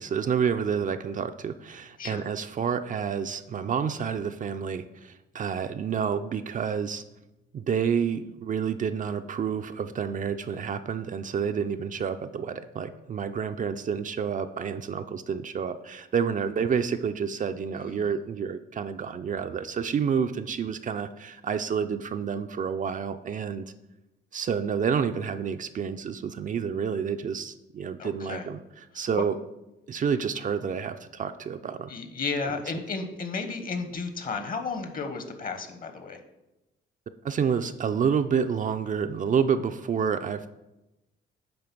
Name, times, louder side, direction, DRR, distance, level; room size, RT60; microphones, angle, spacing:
voice 1, 0.0-7.0 7.5-23.6 24.3-28.6 28.9-29.4 29.9-31.9 37.2-40.5, right 7 dB, 40° right, 9 dB, 0.4 m, -29 dB
voice 2, 17.7-18.1 28.0-28.5 28.9-29.1 30.1-30.2 31.9-36.2, left 4 dB, 45° left, 7 dB, 1.1 m, -33 dB
8.7 x 3.3 x 6.0 m, 0.96 s
cardioid pair, 90°, 20 cm